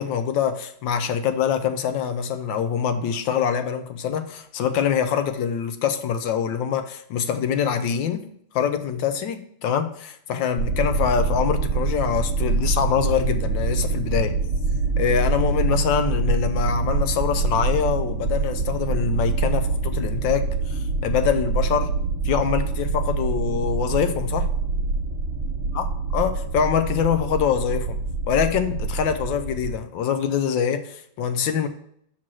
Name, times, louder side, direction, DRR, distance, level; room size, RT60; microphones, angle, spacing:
voice 1, 0.0-8.2 8.5-14.3 15.0-21.9 22.2-24.5 25.7-25.9 26.1-28.0 28.3-31.7, left 8 dB, 75° left, 8 dB, 1.3 m, -24 dB
sound 1, 10.6-29.8, right 3 dB, 60° right, 1.5 m, -25 dB
6.1 x 4.3 x 6.1 m, 0.67 s
omnidirectional pair, 2.1 m